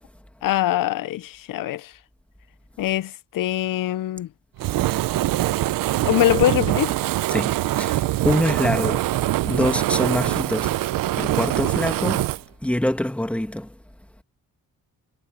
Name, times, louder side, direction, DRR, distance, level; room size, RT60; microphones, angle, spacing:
voice 1, 0.4-1.9 2.8-4.3 6.1-6.9, left 13 dB, 75° left, 0.7 m, -23 dB
Fire, 4.6-12.4, right 15 dB, 80° right, 0.7 m, -23 dB
voice 2, 7.3-9.1 9.4-10.7 11.1-12.3 12.6-13.7, left 1 dB, 5° left, 1.9 m, -25 dB
cardioid pair, 85°, 33 cm